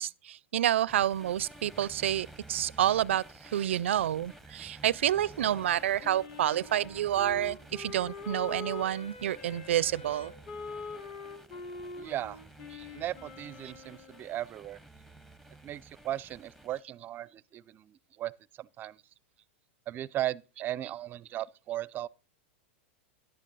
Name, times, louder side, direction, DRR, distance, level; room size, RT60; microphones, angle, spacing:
voice 1, 0.0-10.3, right 11 dB, 85° right, 0.4 m, -29 dB
sound 1, 0.9-16.8, right 1 dB, 5° left, 0.8 m, -53 dB
Wind instrument woodwind instrument, 5.4-14.3, left 4 dB, 55° left, 3.2 m, -44 dB
voice 2, 12.0-12.4 12.9-14.8 15.6-18.3 18.6-19.0 19.9-22.1, right 13 dB, 30° right, 0.5 m, -37 dB
11.5 x 10.0 x 4.0 m
hypercardioid pair, 120°, 6 cm